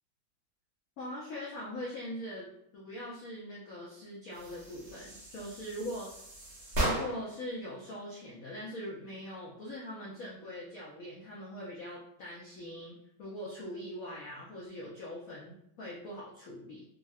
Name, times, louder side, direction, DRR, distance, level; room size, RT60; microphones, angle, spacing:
voice 1, 1.0-2.5 2.7-6.1 6.8-16.8, left 1 dB, 70° left, -5 dB, 0.8 m, -42 dB
sound 1, 4.3-7.4, right 1 dB, 45° right, 1.1 m, -36 dB
3.6 x 2.0 x 2.3 m, 0.73 s
omnidirectional pair, 2.2 m